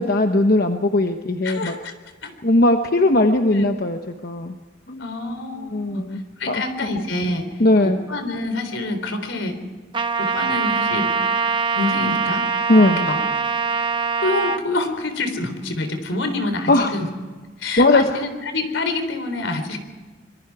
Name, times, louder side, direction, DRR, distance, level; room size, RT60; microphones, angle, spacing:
voice 1, 0.0-1.7 2.4-4.5 4.9-5.1 5.7-6.2 6.5-6.6 7.6-8.0 12.7-13.0 16.7-16.9 17.8-18.2, left 2 dB, 50° left, 5 dB, 1.0 m, -18 dB
voice 2, 1.4-1.9 2.2-2.3 3.5-3.6 5.0-6.1 6.4-9.6 10.2-11.1 11.8-12.5 12.8-13.2 14.2-17.1 17.6-19.8, left 2 dB, 75° left, 7 dB, 3.7 m, -26 dB
Trumpet, 9.9-14.6, right 5 dB, 25° right, 0.9 m, -23 dB
26.0 x 22.5 x 4.8 m, 1.4 s
head